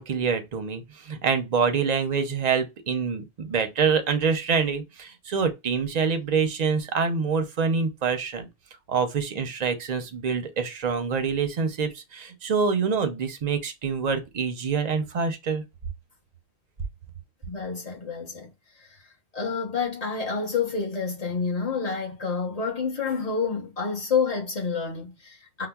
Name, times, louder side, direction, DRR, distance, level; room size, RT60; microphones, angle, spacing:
voice 1, 0.0-8.5 8.9-15.6, right 5 dB, 50° right, 0.6 m, -26 dB
voice 2, 17.5-18.5 19.3-25.7, left 5 dB, 40° left, 1.0 m, -28 dB
5.4 x 2.0 x 2.2 m
omnidirectional pair, 1.1 m